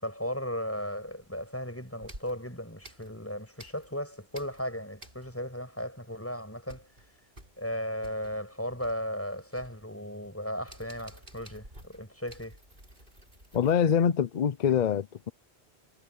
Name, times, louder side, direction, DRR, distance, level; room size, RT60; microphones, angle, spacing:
voice 1, 0.0-6.9 7.6-12.6, equal, 10° left, 7.6 m, -36 dB
sound 1, 1.1-1.6 2.0-4.0 4.3-5.6 5.9-6.0 6.3-13.7, right 1 dB, 50° right, 8.4 m, -52 dB
voice 2, 13.5-15.3, left 8 dB, 50° left, 0.7 m, -25 dB
omnidirectional pair, 1.1 m